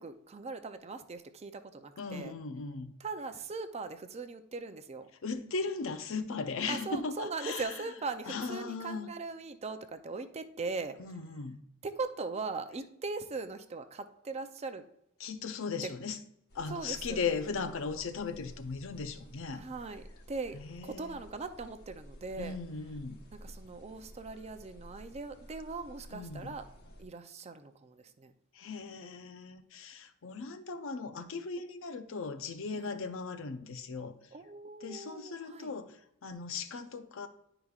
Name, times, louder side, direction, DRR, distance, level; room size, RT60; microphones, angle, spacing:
voice 1, 0.0-2.3 3.0-5.1 6.7-11.0 11.8-14.8 15.8-15.9 16.7-17.5 19.5-22.6 23.4-26.6 27.0-28.3 32.7-32.9 34.3-35.7, right 4 dB, 30° right, 9 dB, 0.5 m, -40 dB
voice 2, 2.0-2.9 5.2-7.7 8.3-9.1 11.0-11.6 15.2-16.2 16.5-19.6 20.5-21.1 22.4-23.2 26.1-26.5 28.5-34.1 34.8-37.3, left 4 dB, 65° left, 9 dB, 0.6 m, -38 dB
sound 1, 16.5-27.0, equal, 50° left, 1.2 m, -52 dB
10.5 x 4.9 x 2.4 m, 0.77 s
head